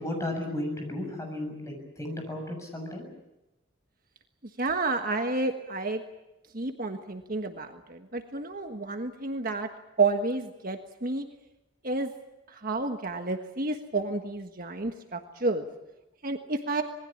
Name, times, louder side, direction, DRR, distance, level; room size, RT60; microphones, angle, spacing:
voice 1, 0.0-3.1, left 1 dB, 15° left, 2 dB, 7.0 m, -34 dB
voice 2, 4.6-6.0 6.5-9.7 10.0-11.2 11.8-12.1 12.5-15.7 16.2-16.8, right 3 dB, 45° right, 5 dB, 1.4 m, -30 dB
26.5 x 20.0 x 8.7 m, 0.96 s
head